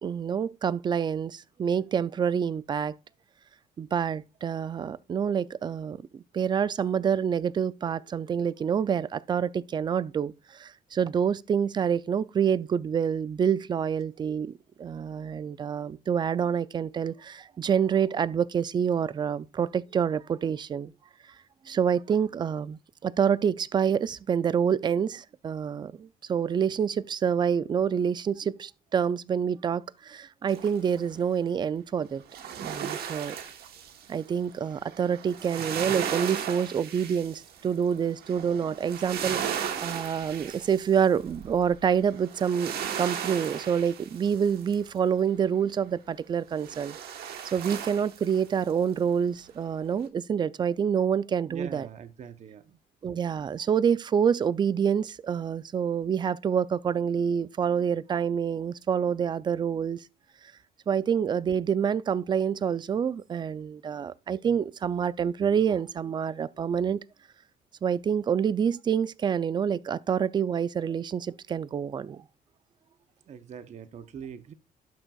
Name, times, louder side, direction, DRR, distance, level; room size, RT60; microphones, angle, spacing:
voice 1, 0.0-2.9 3.8-20.9 21.7-32.2 32.6-33.4 34.1-47.0 47.5-51.9 53.0-60.0 60.9-67.0 67.8-72.2, right 7 dB, 25° right, 0.3 m, -27 dB
sound 1, 30.5-31.1 32.2-45.0 46.6-48.7 49.1-49.2, right 8 dB, 70° right, 1.2 m, -36 dB
voice 2, 51.5-52.8 73.3-74.5, right 7 dB, 45° right, 0.7 m, -43 dB
11.5 x 6.2 x 2.3 m
cardioid pair, 110°, 17 cm